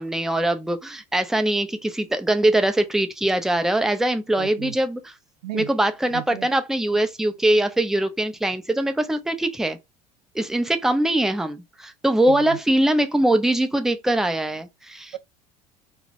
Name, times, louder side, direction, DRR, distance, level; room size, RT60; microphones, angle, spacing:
voice 1, 0.0-5.1 5.5-9.8 10.3-15.2, right 1 dB, ahead, 0.4 m, -22 dB
voice 2, 4.4-4.7 5.4-5.7 6.1-6.5 12.3-12.4, right 13 dB, 75° right, 0.4 m, -33 dB
2.2 x 2.0 x 2.7 m
figure-of-eight pair, 70°, 21 cm